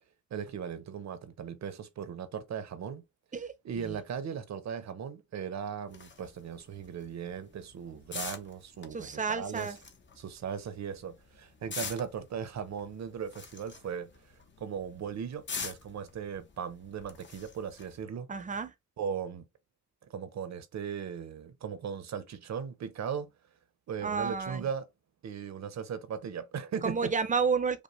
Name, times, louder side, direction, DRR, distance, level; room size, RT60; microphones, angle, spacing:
voice 1, 0.3-3.0 3.6-9.7 10.2-14.1 14.6-18.3 19.0-19.5 20.1-23.3 23.9-24.8 25.2-27.1, right 7 dB, 65° right, 0.7 m, -38 dB
sound 1, 5.9-18.0, left 4 dB, 40° left, 0.8 m, -45 dB
voice 2, 8.9-9.8 18.3-18.7 24.0-24.7 26.8-27.8, right 5 dB, 25° right, 0.6 m, -31 dB
5.2 x 2.1 x 3.1 m
cardioid pair, 100°, 29 cm